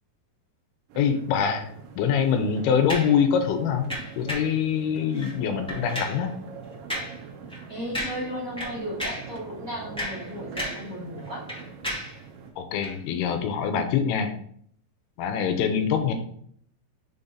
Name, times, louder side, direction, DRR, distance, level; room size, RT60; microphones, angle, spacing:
sound 1, 0.9-12.5, right 5 dB, 80° right, 2.9 m, -43 dB
voice 1, 1.0-1.7 2.0-3.9 4.2-6.3 12.6-14.3 15.2-16.1, left 7 dB, 85° left, 6 dB, 2.6 m, -24 dB
sound 2, 2.9-3.2 3.9-4.6 5.1-5.4 5.7-6.2 6.9-7.2 7.5-7.6 7.9-8.3 8.6-9.3 9.8-10.9 11.2-12.2 12.8-13.0, equal, 10° left, 0.3 m, -33 dB
voice 2, 7.7-11.5, equal, 45° right, -8 dB, 1.1 m, -35 dB
6.3 x 3.9 x 3.9 m, 0.62 s
omnidirectional pair, 4.5 m